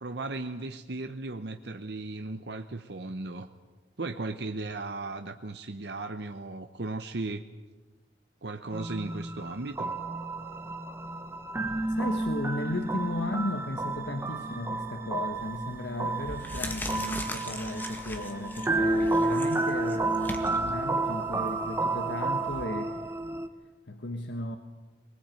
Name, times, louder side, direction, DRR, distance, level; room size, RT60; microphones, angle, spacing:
voice 1, 0.0-3.5 4.0-7.4 8.4-10.0, right 2 dB, 70° right, 7 dB, 0.9 m, -36 dB
sound 1, 8.7-23.5, right 2 dB, 15° right, 1.1 m, -31 dB
voice 2, 11.9-23.0 23.9-24.6, left 1 dB, 75° left, 6 dB, 1.4 m, -35 dB
sound 2, 15.4-15.7 16.1-22.6, left 1 dB, 10° left, 1.8 m, -40 dB
22.0 x 20.5 x 9.1 m, 1.3 s
head